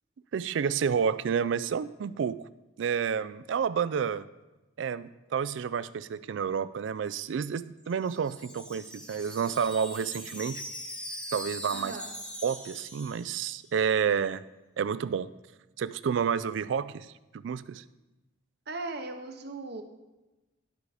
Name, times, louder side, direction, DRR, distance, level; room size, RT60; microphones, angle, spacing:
voice 1, 0.3-2.4 2.8-4.2 4.8-10.6 11.3-12.0 12.4-14.4 14.8-15.3 15.8-17.1 17.3-17.8, right 7 dB, 70° right, 16 dB, 0.3 m, -30 dB
Wind chime, 7.8-13.8, equal, 5° left, 0.9 m, -42 dB
voice 2, 11.7-12.1 18.7-19.8, right 3 dB, 55° right, 6 dB, 0.8 m, -38 dB
11.5 x 4.8 x 4.9 m, 1.1 s
head